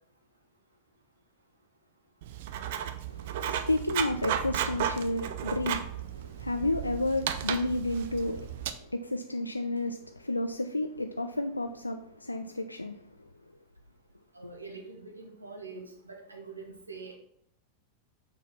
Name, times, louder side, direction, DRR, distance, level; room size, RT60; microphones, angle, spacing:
Writing, 2.2-8.7, right 9 dB, 55° right, 0.5 m, -34 dB
voice 1, 3.1-13.3 14.4-14.5, left 2 dB, 85° left, 0.3 m, -32 dB
voice 2, 14.3-17.2, right 4 dB, 80° right, 1.2 m, -44 dB
6.6 x 4.0 x 5.7 m
figure-of-eight pair, 90°, 0 cm